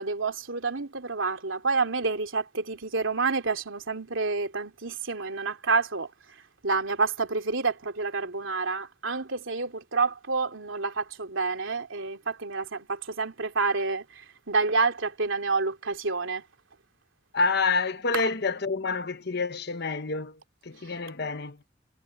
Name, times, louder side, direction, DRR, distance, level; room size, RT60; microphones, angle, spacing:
voice 1, 0.0-6.1 6.6-16.4 18.1-18.3, right 4 dB, 85° right, 2.9 m, -28 dB
voice 2, 17.3-21.6, left 4 dB, 55° left, 1.2 m, -28 dB
head